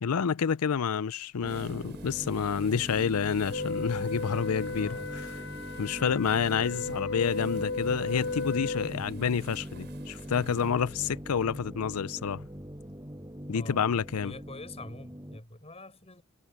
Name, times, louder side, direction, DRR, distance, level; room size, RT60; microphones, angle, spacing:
voice 1, 0.0-5.3 5.8-12.5 13.5-14.3, left 6 dB, 85° left, 0.5 m, -29 dB
sound 1, 1.4-15.4, equal, 15° right, 7.2 m, -42 dB
sound 2, 1.4-11.2, right 6 dB, 50° right, 6.3 m, -55 dB
Wind instrument woodwind instrument, 3.5-9.0, left 3 dB, 70° left, 1.5 m, -35 dB
voice 2, 4.8-5.2 8.9-9.2 13.5-13.8 14.2-16.2, left 1 dB, 30° left, 7.1 m, -44 dB
head